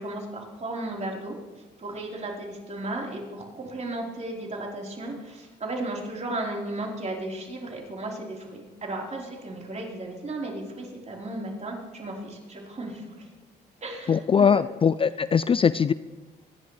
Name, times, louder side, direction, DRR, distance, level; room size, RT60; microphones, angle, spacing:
voice 1, 0.0-1.4 1.8-13.3 13.8-14.6, right 2 dB, 40° right, -2 dB, 4.2 m, -35 dB
voice 2, 14.1-15.9, left 6 dB, 30° left, 16 dB, 0.4 m, -21 dB
26.0 x 10.5 x 3.3 m, 1.3 s
cardioid pair, 75°, 18 cm